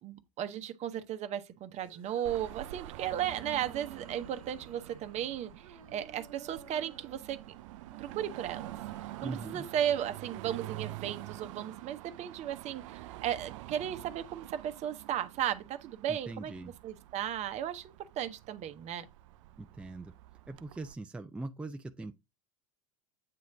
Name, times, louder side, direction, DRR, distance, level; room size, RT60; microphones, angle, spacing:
voice 1, 0.0-7.4 8.0-8.7 9.2-19.0, right 10 dB, 45° right, 0.8 m, -35 dB
sound 1, 1.7-13.0, right 6 dB, 85° right, 1.0 m, -55 dB
Car passing by / Traffic noise roadway noise / Engine, 2.2-20.9, right 16 dB, 65° right, 0.4 m, -47 dB
voice 2, 9.2-9.7 16.1-16.7 19.6-20.1 20.5-22.1, right 2 dB, 5° right, 0.5 m, -41 dB
8.5 x 3.1 x 3.9 m
hypercardioid pair, 85°, 17 cm